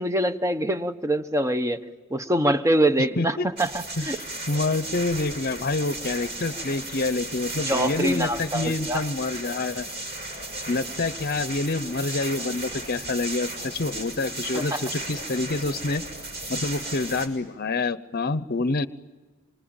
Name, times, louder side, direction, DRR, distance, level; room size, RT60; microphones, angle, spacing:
voice 1, 0.0-1.8 2.1-4.2 7.7-9.0 14.5-14.8, right 1 dB, 15° right, 10 dB, 1.0 m, -24 dB
voice 2, 3.2-3.5 4.0-9.9 10.7-16.0 16.5-18.9, left 3 dB, 45° left, 14 dB, 0.8 m, -27 dB
sound 1, 3.6-17.3, right 2 dB, 50° right, 6.3 m, -35 dB
26.5 x 25.5 x 8.9 m, 1.3 s
head